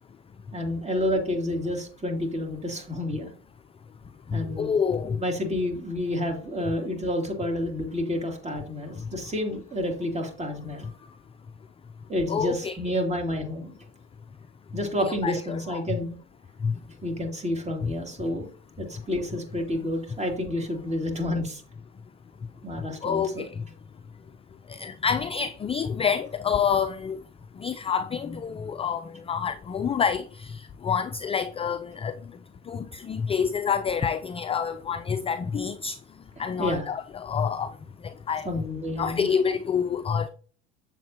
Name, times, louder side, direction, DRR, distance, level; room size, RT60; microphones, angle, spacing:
voice 1, 0.5-3.3 4.3-4.7 5.2-10.9 12.1-13.7 14.7-16.2 17.0-18.5 18.8-21.6 22.6-23.5 36.4-36.9 38.4-39.3, left 1 dB, 20° right, 2.8 m, -29 dB
voice 2, 4.3-5.2 12.3-12.8 15.1-15.8 16.6-16.7 17.8-17.9 23.0-23.5 24.7-27.2 27.6-32.2 32.7-36.0 36.4-37.7 38.3-38.5 39.0-40.3, left 7 dB, 15° left, 0.4 m, -27 dB
7.6 x 7.3 x 2.9 m
hypercardioid pair, 90°, 36 cm